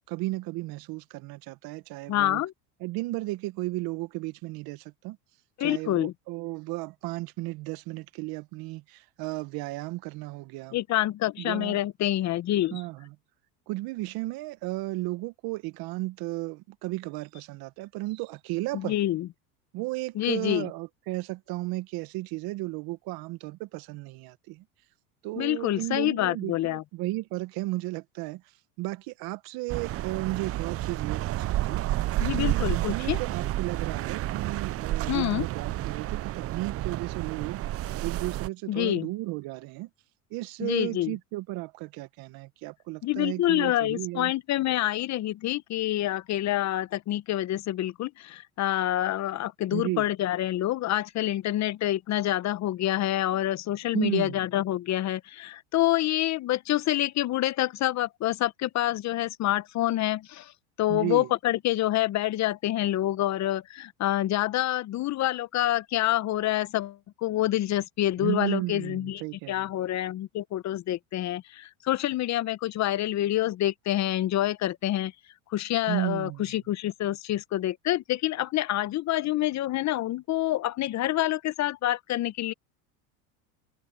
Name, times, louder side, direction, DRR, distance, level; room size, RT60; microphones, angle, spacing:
voice 1, 0.1-2.4 2.8-5.2 5.6-10.8 11.4-11.8 12.7-13.1 13.7-19.0 19.7-24.6 25.2-28.4 28.8-31.8 32.3-39.9 40.3-44.3 49.7-50.1 53.9-54.4 60.9-61.3 68.2-69.7 75.9-76.5, right 20 dB, 60° right, 1.4 m, -34 dB
voice 2, 2.1-2.5 5.6-6.1 10.7-12.8 18.7-19.3 20.1-20.7 25.4-26.8 32.2-33.2 35.1-35.4 38.7-39.1 40.6-41.1 43.0-60.5 60.8-69.2 69.5-75.1 75.5-82.5, left 14 dB, 40° left, 0.9 m, -27 dB
sound 1, 29.7-38.5, right 15 dB, 35° right, 0.6 m, -30 dB
supercardioid pair, 105°, 41 cm